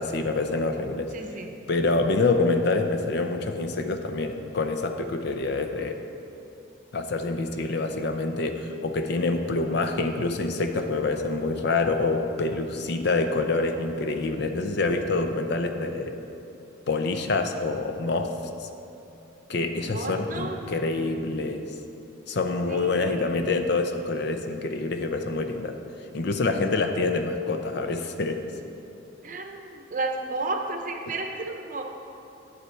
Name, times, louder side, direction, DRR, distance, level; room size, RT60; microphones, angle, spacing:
voice 1, 0.0-1.1 1.7-6.0 6.9-16.2 16.9-18.3 18.6-18.7 19.5-21.6 22.3-25.8 26.1-28.4, left 3 dB, 55° left, 6 dB, 0.5 m, -26 dB
voice 2, 1.1-1.5 19.8-20.7 22.7-23.5 29.2-31.8, right 2 dB, 40° right, 3 dB, 0.8 m, -33 dB
9.5 x 7.4 x 4.5 m, 2.9 s
head